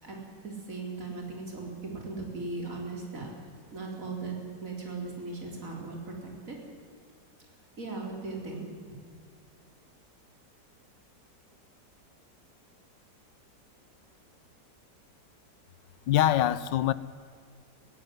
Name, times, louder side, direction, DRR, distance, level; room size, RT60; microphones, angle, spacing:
voice 1, 0.0-3.3 3.7-6.6 7.8-8.7, right 3 dB, 45° right, 4.4 m, -38 dB
voice 2, 16.1-16.9, left 12 dB, 85° left, 1.5 m, -24 dB
21.0 x 16.5 x 9.4 m
omnidirectional pair, 1.9 m